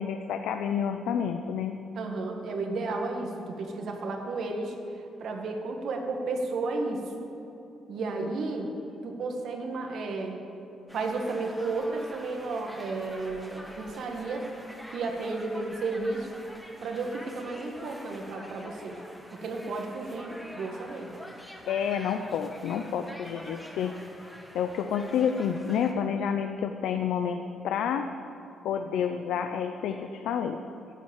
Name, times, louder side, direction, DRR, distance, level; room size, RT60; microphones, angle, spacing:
voice 1, 0.0-1.8 21.7-23.9 24.5-28.1 28.6-30.6, left 7 dB, 80° left, 6 dB, 0.6 m, -29 dB
voice 2, 1.9-7.0 7.9-8.7 9.0-10.4 10.9-14.5 14.9-16.3 16.8-19.0 19.3-21.1, right 3 dB, 65° right, 3 dB, 1.8 m, -33 dB
sound 1, 10.9-25.9, equal, ahead, 1.6 m, -46 dB
11.0 x 7.5 x 8.9 m, 3.0 s
cardioid pair, 90°, 0 cm